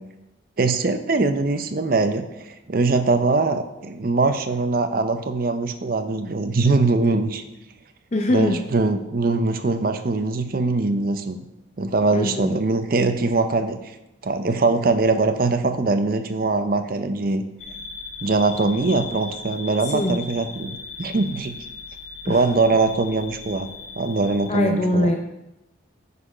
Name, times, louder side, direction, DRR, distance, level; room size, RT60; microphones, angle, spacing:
voice 1, 0.6-7.4 8.3-11.5 11.8-13.8 14.2-17.4 18.2-21.6 22.3-23.7 24.0-25.1, right 3 dB, 50° right, 9 dB, 0.6 m, -22 dB
voice 2, 8.1-8.6 12.1-12.6 19.8-20.2 22.2-22.4 24.5-25.2, left 1 dB, 35° left, 3 dB, 0.5 m, -22 dB
sound 1, 17.6-24.5, left 4 dB, 70° left, 1.5 m, -38 dB
9.9 x 4.1 x 5.0 m, 0.93 s
head